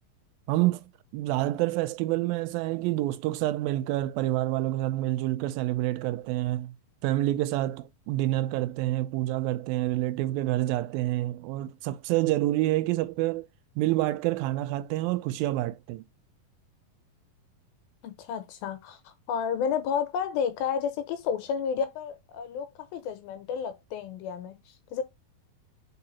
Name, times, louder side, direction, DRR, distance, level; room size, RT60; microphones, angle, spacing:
voice 1, 0.5-0.8 1.1-6.7 7.0-13.5 13.8-16.1, right 16 dB, 80° right, 2.3 m, -27 dB
voice 2, 18.0-25.0, left 7 dB, 80° left, 2.9 m, -31 dB
4.9 x 4.8 x 4.1 m
omnidirectional pair, 4.2 m